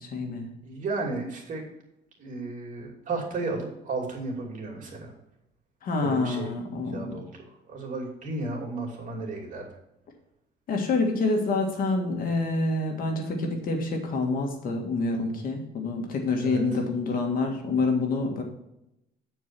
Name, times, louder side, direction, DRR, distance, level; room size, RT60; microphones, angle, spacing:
voice 1, 0.0-0.5 5.8-7.2 10.7-18.4, left 3 dB, 60° left, 2 dB, 1.8 m, -27 dB
voice 2, 0.6-1.6 2.2-5.1 6.0-6.5 6.8-9.7 16.4-16.6, right 3 dB, 50° right, 0 dB, 2.7 m, -34 dB
8.5 x 4.8 x 5.9 m, 0.84 s
cardioid pair, 110°, 17 cm